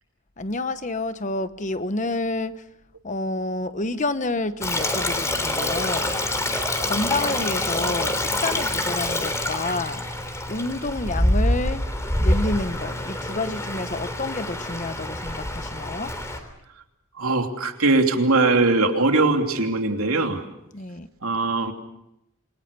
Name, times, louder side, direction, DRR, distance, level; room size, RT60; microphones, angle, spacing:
voice 1, 0.4-2.6 3.0-6.1 6.8-10.0 10.5-11.8 12.2-16.1 20.7-21.1, left 2 dB, 35° left, 11 dB, 1.0 m, -29 dB
Stream, 4.6-16.4, left 1 dB, 15° left, 3.3 m, -26 dB
voice 2, 17.1-20.4 21.2-21.7, right 3 dB, 80° right, 4 dB, 3.0 m, -21 dB
28.5 x 23.5 x 6.8 m, 0.82 s
head